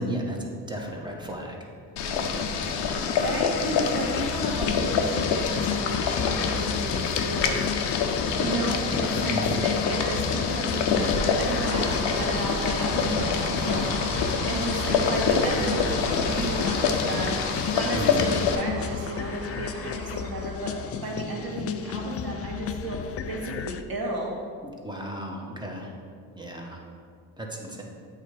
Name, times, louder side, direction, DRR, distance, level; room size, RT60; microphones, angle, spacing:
voice 1, 0.0-1.7 2.1-2.5 8.3-8.6 9.3-9.6 17.9-18.3 24.6-25.9 26.3-26.8 27.4-27.8, right 1 dB, 10° right, 0 dB, 1.3 m, -34 dB
Boiling, 2.0-18.6, left 5 dB, 75° left, 0.8 m, -26 dB
voice 2, 3.1-7.6 8.4-15.9 16.3-17.4 17.7-20.7 21.0-23.0 23.3-24.4, right 2 dB, 55° right, -2 dB, 1.8 m, -33 dB
sound 1, 4.0-23.8, left 8 dB, 35° left, 0.4 m, -33 dB
sound 2, 11.1-21.6, right 4 dB, 80° right, 0.8 m, -37 dB
8.1 x 3.3 x 4.9 m, 2.1 s
supercardioid pair, 60°, 43 cm